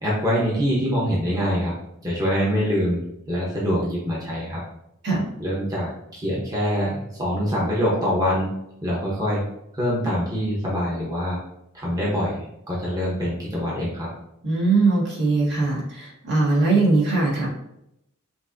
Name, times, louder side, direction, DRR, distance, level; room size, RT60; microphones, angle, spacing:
voice 1, 0.0-1.7 2.0-3.0 3.3-4.6 5.4-8.5 8.8-9.4 9.7-11.4 11.7-14.1, equal, 15° right, -6 dB, 0.9 m, -24 dB
voice 2, 14.4-17.5, right 3 dB, 55° right, -5 dB, 1.5 m, -20 dB
5.9 x 2.6 x 2.6 m, 0.80 s
head